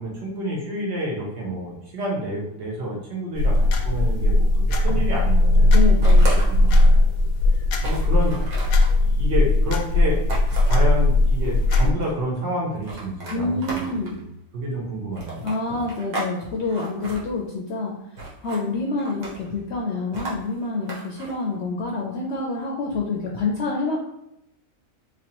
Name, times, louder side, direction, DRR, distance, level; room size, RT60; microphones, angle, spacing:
voice 1, 0.0-7.3 7.5-8.4 9.0-10.2 10.5-14.3 14.5-15.5 15.8-15.9, right 1 dB, 55° right, -2 dB, 1.2 m, -29 dB
sound 1, 3.4-11.9, left 2 dB, 90° left, 1.0 m, -18 dB
voice 2, 5.7-6.3 13.3-14.1 15.4-24.0, left 3 dB, 60° left, -2 dB, 0.8 m, -27 dB
sound 2, 6.0-7.0 7.4-7.5 7.8-8.9 10.3-10.8 11.4-12.1 12.8-14.2 15.1-16.3 16.6-17.2 18.2-18.6 19.0-19.5 20.1-21.3, right 2 dB, 75° right, 1.4 m, -34 dB
3.3 x 3.1 x 2.9 m, 0.80 s
omnidirectional pair, 1.4 m